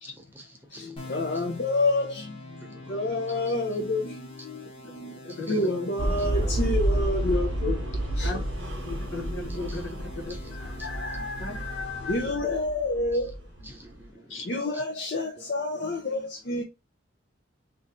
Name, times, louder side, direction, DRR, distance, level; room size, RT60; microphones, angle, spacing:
voice 1, 0.0-1.0 2.6-3.5 5.3-5.6 6.2-6.3 9.5-9.8 10.1-10.9 13.6-14.8 15.4-15.5 15.7-15.8, right 1 dB, 10° right, 0.6 m, -49 dB
voice 2, 0.7-7.8 8.1-8.4 10.5-13.7 14.4-16.6, left 2 dB, 50° left, 0.6 m, -29 dB
sound 1, 1.0-12.3, left 2 dB, 25° left, 0.9 m, -44 dB
voice 3, 5.1-5.9 6.4-6.5 8.2-8.4 8.8-10.4 11.4-11.5 14.3-14.5, left 2 dB, 80° left, 1.2 m, -36 dB
sound 2, 6.0-14.0, right 1 dB, 65° right, 0.8 m, -30 dB
3.2 x 2.6 x 3.5 m
head